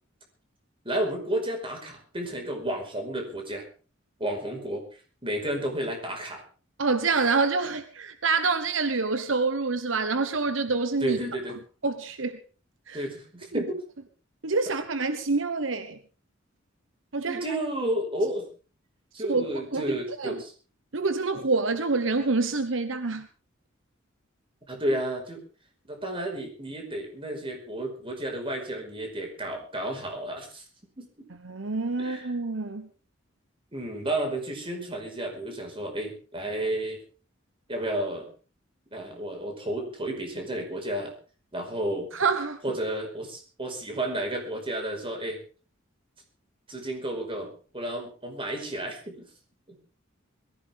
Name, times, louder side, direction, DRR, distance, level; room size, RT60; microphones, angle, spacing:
voice 1, 0.9-3.6 4.2-6.4 11.0-11.6 12.9-13.7 17.3-18.5 19.1-20.5 24.7-25.4 25.9-30.6 31.0-31.1 32.0-32.3 33.7-37.0 37.7-38.3 38.9-41.1 41.5-42.1 42.6-45.4 46.7-49.3 49.7-49.8, right 1 dB, 25° right, 3 dB, 5.2 m, -32 dB
voice 2, 6.8-11.2 11.8-12.4 12.9-13.0 13.5-13.6 14.4-16.0 17.1-17.4 19.2-19.5 19.7-20.4 20.9-23.3 31.4-32.9 42.1-42.6, right 4 dB, 70° right, 9 dB, 1.2 m, -27 dB
21.5 x 15.5 x 3.7 m, 0.37 s
head